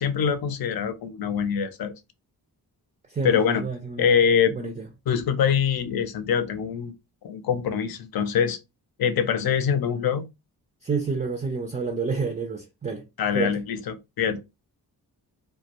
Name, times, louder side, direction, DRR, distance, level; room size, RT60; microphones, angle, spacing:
voice 1, 0.0-1.9 3.2-3.7 4.0-4.6 5.1-6.9 7.2-8.6 9.0-10.2 13.2-14.4, left 7 dB, 65° left, 0.6 m, -24 dB
voice 2, 3.1-4.2 4.6-4.8 10.8-13.0 13.3-13.6, right 4 dB, 20° right, 0.4 m, -29 dB
2.2 x 2.1 x 2.8 m
cardioid pair, 65°, 40 cm